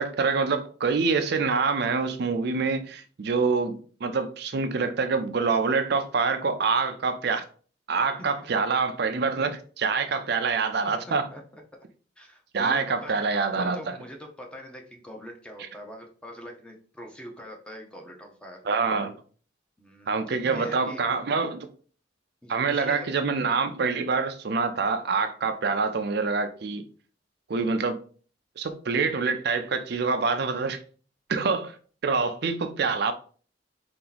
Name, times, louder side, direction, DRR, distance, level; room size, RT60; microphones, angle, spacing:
voice 1, 0.0-7.4 7.9-11.3 12.5-14.0 18.6-19.1 20.1-21.7 22.5-26.8 27.5-28.0 28.6-30.8 31.3-31.8 32.0-33.1, right 4 dB, 60° right, 0.5 m, -26 dB
voice 2, 10.9-11.4 12.2-13.2 13.5-18.6 19.8-21.0 22.4-23.1, equal, 5° left, 0.7 m, -43 dB
4.3 x 2.9 x 3.9 m
head